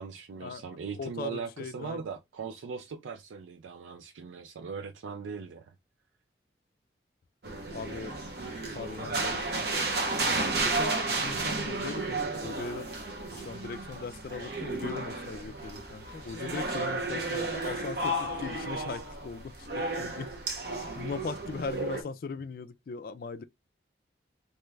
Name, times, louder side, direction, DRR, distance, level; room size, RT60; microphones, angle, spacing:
voice 1, 0.0-5.7 11.5-11.6, right 5 dB, 90° right, 0.4 m, -39 dB
voice 2, 1.0-2.0 7.7-8.1 8.7-9.4 10.6-12.9 13.2-20.3 20.8-23.4, left 4 dB, 50° left, 0.3 m, -39 dB
sound 1, 7.4-22.0, right 2 dB, 60° right, 0.8 m, -33 dB
2.9 x 2.3 x 3.2 m
head